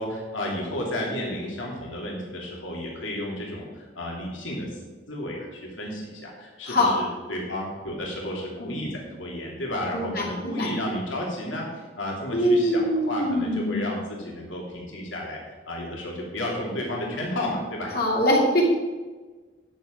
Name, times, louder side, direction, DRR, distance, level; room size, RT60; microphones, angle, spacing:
voice 1, 0.0-4.8 5.1-15.4 15.7-17.9, left 1 dB, 85° left, -2 dB, 2.9 m, -32 dB
voice 2, 9.9-10.7 12.3-13.8 17.9-18.6, left 1 dB, 50° left, -1 dB, 2.4 m, -23 dB
10.5 x 7.6 x 5.2 m, 1.3 s
head